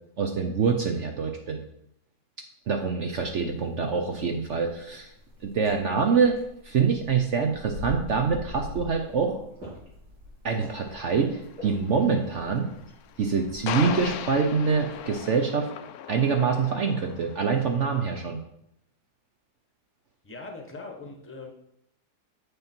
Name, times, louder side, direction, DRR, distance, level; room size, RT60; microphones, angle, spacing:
voice 1, 0.2-1.6 2.7-5.1 5.4-6.4 6.6-9.3 10.4-12.7 13.2-15.7 16.1-18.4, right 5 dB, 55° right, 4 dB, 0.9 m, -25 dB
sound 1, 3.2-15.3, equal, 85° right, 3.5 m, -45 dB
sound 2, 10.8-18.2, left 9 dB, 70° left, 1.0 m, -38 dB
voice 2, 20.2-21.5, left 3 dB, 10° left, 2 dB, 1.0 m, -41 dB
7.4 x 6.6 x 4.4 m, 0.76 s
omnidirectional pair, 1.8 m